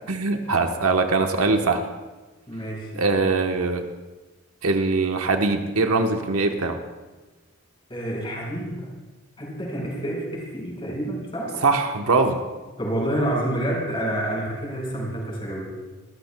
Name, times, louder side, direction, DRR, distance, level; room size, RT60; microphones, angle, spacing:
voice 1, 0.1-1.8 3.0-3.8 4.6-6.8 11.6-12.4, right 3 dB, 85° right, 4 dB, 1.1 m, -22 dB
voice 2, 2.5-3.0 7.9-8.9 9.4-11.6 12.8-15.8, right 1 dB, 25° left, -2 dB, 5.0 m, -28 dB
24.5 x 14.0 x 2.3 m, 1.2 s
head